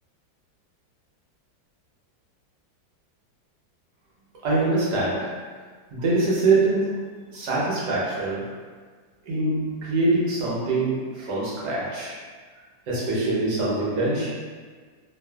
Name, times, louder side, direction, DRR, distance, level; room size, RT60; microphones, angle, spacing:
voice 1, 4.4-5.3 5.9-7.0 7.3-8.5 9.3-12.1 12.9-14.3, right 2 dB, 70° right, -7 dB, 1.3 m, -24 dB
3.1 x 2.4 x 2.2 m, 1.5 s
omnidirectional pair, 2.1 m